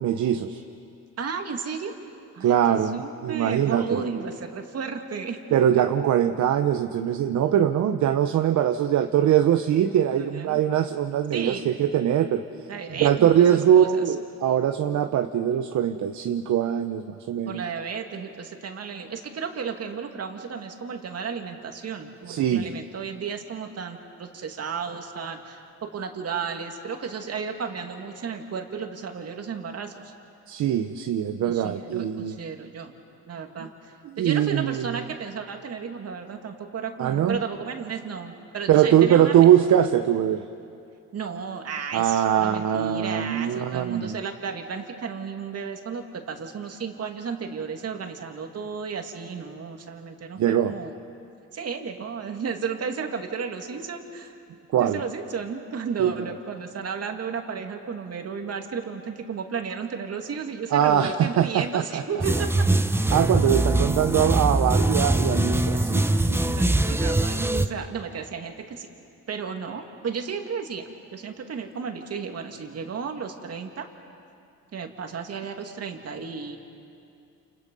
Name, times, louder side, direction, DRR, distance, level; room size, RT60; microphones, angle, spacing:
voice 1, 0.0-0.6 2.4-4.0 5.5-12.4 13.0-17.6 22.3-22.7 30.5-32.4 34.0-35.0 37.0-37.4 38.7-40.4 41.9-44.2 50.4-50.8 54.7-55.0 56.0-56.1 60.7-62.0 63.1-66.6, right 10 dB, 70° right, 7 dB, 0.9 m, -22 dB
voice 2, 1.2-1.9 2.3-5.4 5.7-5.8 10.1-10.6 11.3-11.7 12.7-14.0 17.5-30.1 31.4-32.9 33.3-39.4 41.1-50.9 51.5-54.4 54.8-62.7 66.5-68.9 69.3-73.9 74.7-76.6, right 6 dB, 55° right, 4 dB, 2.4 m, -33 dB
sound 1, 62.2-67.7, right 2 dB, 10° right, 0.8 m, -22 dB
29.0 x 29.0 x 5.5 m, 2.5 s
cardioid pair, 90°, 30 cm